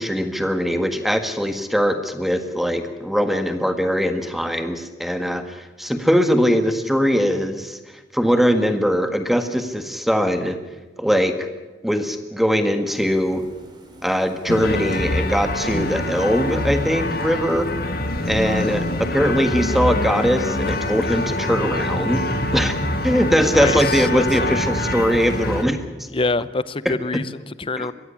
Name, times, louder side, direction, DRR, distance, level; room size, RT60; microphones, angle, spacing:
voice 1, 0.0-7.8 8.1-10.6 11.0-11.5 11.8-13.4 14.0-17.7 18.2-22.2 22.5-22.8 23.0-25.8 26.8-27.2 27.8-27.9, equal, ahead, 8 dB, 1.6 m, -21 dB
sound 1, 12.9-20.7, right 1 dB, 25° right, 3.9 m, -47 dB
sound 2, 14.5-25.6, left 1 dB, 55° left, 2.0 m, -25 dB
voice 2, 23.5-24.6 26.1-27.9, left 3 dB, 30° left, 17 dB, 0.7 m, -25 dB
22.5 x 16.0 x 10.0 m, 1.2 s
head